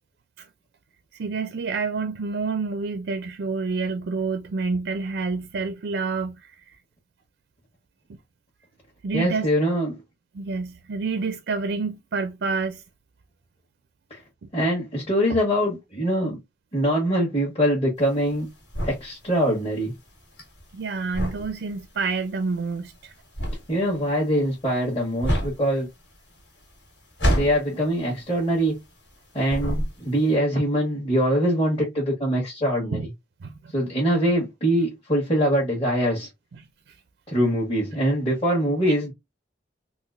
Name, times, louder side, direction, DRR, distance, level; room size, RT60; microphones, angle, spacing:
voice 1, 1.1-6.5 9.0-9.5 10.3-12.8 14.4-14.5 20.7-23.1 32.9-33.1 33.4-33.7, right 4 dB, 65° right, 0.4 m, -28 dB
voice 2, 9.1-10.0 14.1-14.2 14.5-16.4 16.7-18.5 18.8-19.9 23.7-25.9 27.2-28.8 29.3-33.0 33.7-36.3 37.3-39.1, equal, 30° left, 1.3 m, -23 dB
sound 1, 18.0-29.2 29.4-30.3, equal, 70° left, 1.9 m, -29 dB
3.8 x 2.4 x 2.5 m
head